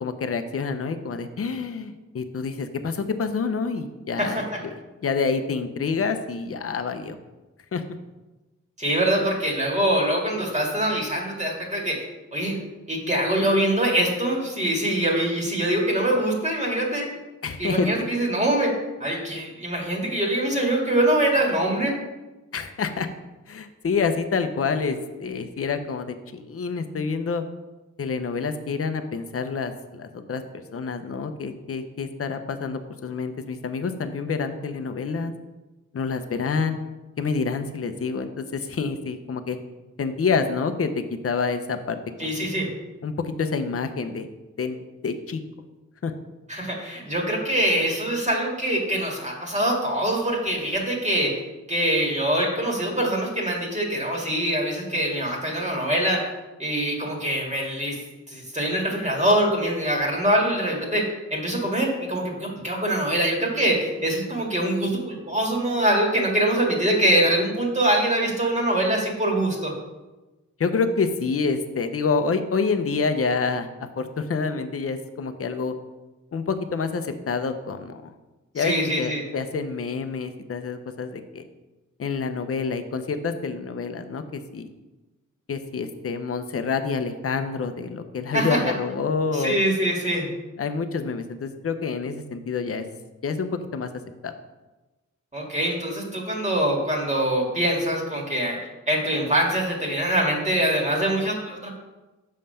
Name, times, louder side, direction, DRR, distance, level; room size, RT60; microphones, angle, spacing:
voice 1, 0.0-7.2 7.7-7.8 17.4-18.1 22.5-23.1 23.5-27.4 28.0-35.3 35.9-36.8 37.2-39.6 40.0-42.3 43.0-44.3 44.6-45.4 46.0-46.1 70.6-75.7 76.3-78.1 78.5-81.5 82.0-84.7 85.5-89.6 90.6-92.9 93.2-93.9 94.2-94.3, left 5 dB, 50° left, 8 dB, 0.7 m, -27 dB
voice 2, 4.2-4.6 8.8-12.6 12.9-17.1 17.6-21.9 42.2-42.7 46.5-51.4 51.7-56.3 56.6-58.0 58.3-69.7 78.6-79.2 88.3-88.6 89.3-90.3 95.3-98.6 98.9-101.7, right 1 dB, 25° right, -1 dB, 1.8 m, -24 dB
6.5 x 5.4 x 5.6 m, 1.1 s
wide cardioid pair, 95°, 30 cm